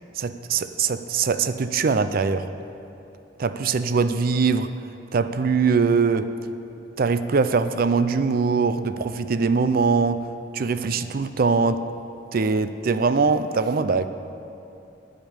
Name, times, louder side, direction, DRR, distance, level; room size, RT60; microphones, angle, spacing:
voice 1, 0.2-2.5 3.4-4.8 5.1-6.4 7.0-10.3 10.5-11.9 12.3-14.1, right 4 dB, 50° right, 11 dB, 0.4 m, -22 dB
12.5 x 5.1 x 8.9 m, 2.8 s
head